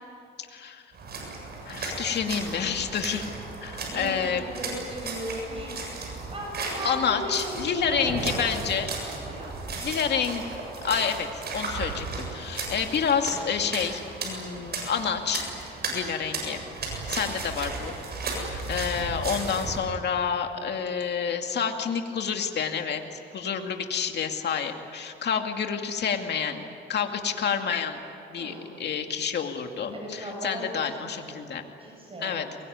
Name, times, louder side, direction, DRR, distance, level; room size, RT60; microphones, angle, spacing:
voice 1, 0.5-0.8 1.7-3.3 3.6-4.4 6.8-8.9 9.8-10.5 10.8-15.4 15.9-16.6 16.9-17.9 18.4-26.6 26.9-31.6 32.2-32.5, left 7 dB, 60° left, 5 dB, 2.4 m, -29 dB
sound 1, 0.9-19.8, right 3 dB, 55° right, 7.6 m, -35 dB
voice 2, 3.9-5.8 6.3-9.5 28.4-28.7 29.9-32.6, equal, 30° right, -1 dB, 7.8 m, -37 dB
23.5 x 22.0 x 9.5 m, 2.8 s
cardioid pair, 90°, 20 cm